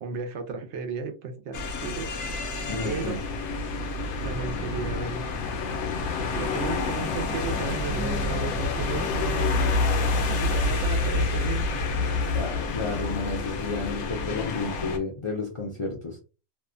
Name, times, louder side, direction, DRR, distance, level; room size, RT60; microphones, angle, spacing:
voice 1, 0.0-2.1 2.8-3.2 4.2-5.3 6.3-9.7 10.1-11.7, right 5 dB, 85° right, 7 dB, 0.9 m, -34 dB
sound 1, 1.5-15.0, left 3 dB, 90° left, 0.9 m, -28 dB
voice 2, 2.7-3.2 6.8-6.9 12.3-16.2, left 3 dB, 50° left, 0 dB, 0.4 m, -32 dB
2.6 x 2.1 x 2.4 m, 0.31 s
omnidirectional pair, 1.2 m